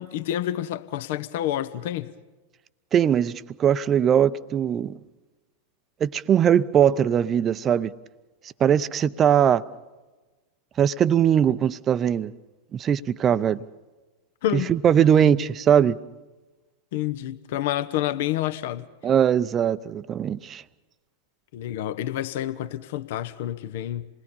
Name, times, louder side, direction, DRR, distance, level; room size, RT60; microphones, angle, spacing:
voice 1, 0.0-2.1 14.4-14.7 16.9-18.9 21.5-24.1, left 12 dB, 55° left, 0.8 m, -28 dB
voice 2, 2.9-5.0 6.0-7.9 8.6-9.6 10.8-12.3 12.7-13.6 14.5-16.0 19.0-20.6, right 9 dB, 25° right, 0.6 m, -20 dB
27.5 x 20.5 x 5.5 m
figure-of-eight pair, 90°, 0 cm